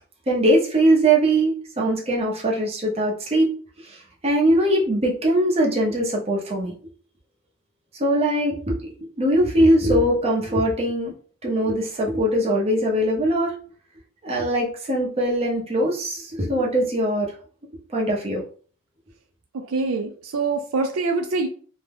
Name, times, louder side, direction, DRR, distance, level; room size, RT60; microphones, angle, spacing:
voice 1, 0.3-3.5 3.8-6.7 8.0-11.1 11.4-13.5 14.2-17.3 17.9-18.4, right 1 dB, 30° right, -3 dB, 0.7 m, -21 dB
voice 2, 19.5-21.5, right 3 dB, 70° right, 4 dB, 0.4 m, -25 dB
2.7 x 2.2 x 3.4 m, 0.43 s
head